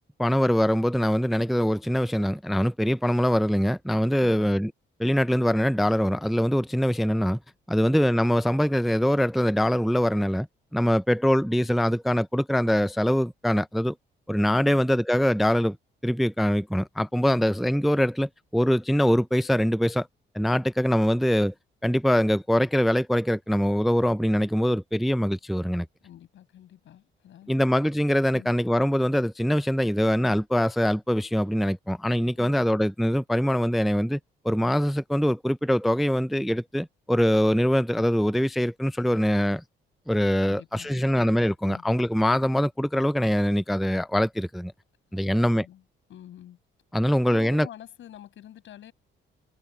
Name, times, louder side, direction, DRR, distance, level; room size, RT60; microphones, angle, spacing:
voice 1, 0.2-4.7 5.0-7.4 7.7-10.5 10.7-14.0 14.3-15.8 16.0-20.1 20.3-21.5 21.8-25.9 27.5-34.2 34.4-39.6 40.1-44.7 45.1-45.7 46.9-47.7, equal, ahead, 0.4 m, -23 dB
voice 2, 26.0-27.7 28.3-28.6 32.3-32.5 40.4-41.3 41.6-41.8 45.1-45.8 46.1-46.6 47.1-48.9, left 11 dB, 75° left, 7.7 m, -47 dB
cardioid pair, 90°, 20 cm